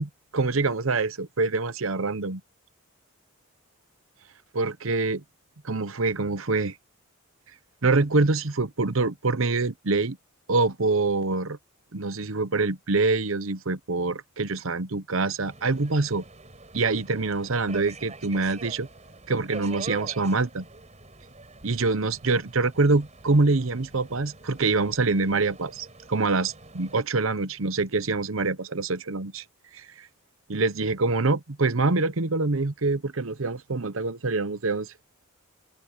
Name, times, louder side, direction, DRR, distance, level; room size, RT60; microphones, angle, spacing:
voice 1, 0.0-2.4 4.5-5.2 5.6-6.7 7.8-10.2 10.5-11.6 11.9-16.2 16.7-18.9 19.3-20.6 21.6-29.4 29.7-30.1 30.5-34.9, right 3 dB, 70° right, 1.0 m, -25 dB
Subway metro underground, 15.4-27.0, right 3 dB, 35° right, 6.3 m, -45 dB
head